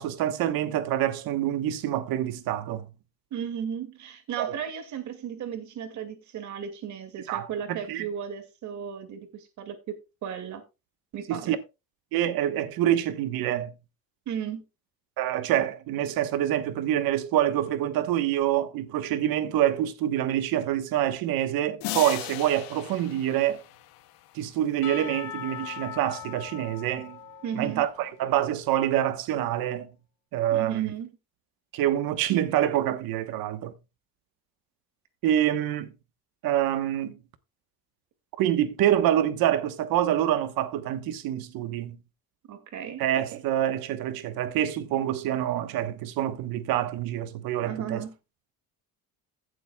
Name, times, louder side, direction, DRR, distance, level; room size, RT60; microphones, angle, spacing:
voice 1, 0.0-2.9 4.4-4.6 7.3-8.0 11.3-11.6 12.1-13.7 15.2-23.6 24.3-27.2 27.5-29.9 30.3-30.9 31.7-33.7 35.2-35.9 36.4-37.2 38.4-42.0 43.0-48.0, right 12 dB, 70° right, 1.2 m, -26 dB
voice 2, 3.3-9.8 10.2-10.6 11.1-11.6 14.3-14.6 27.4-27.8 30.5-31.1 42.5-43.0 47.6-48.1, right 8 dB, 50° right, 2.2 m, -35 dB
sound 1, 21.8-24.6, left 16 dB, 75° left, 0.9 m, -37 dB
Percussion / Church bell, 24.8-28.8, left 10 dB, 60° left, 1.7 m, -41 dB
16.5 x 7.8 x 2.3 m
cardioid pair, 170°, 36 cm